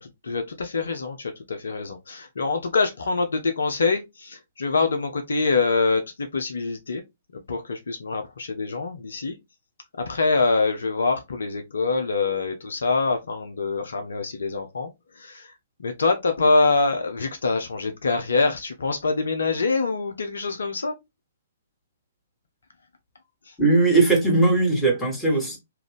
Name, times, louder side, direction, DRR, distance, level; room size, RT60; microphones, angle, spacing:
voice 1, 0.0-7.0 7.5-9.3 10.0-14.9 15.2-15.5 15.8-20.9 23.5-23.6, left 3 dB, 65° left, 0.6 m, -25 dB
voice 2, 23.6-25.6, right 3 dB, 5° left, 1.5 m, -19 dB
3.4 x 2.5 x 3.4 m
figure-of-eight pair, 120°, 0 cm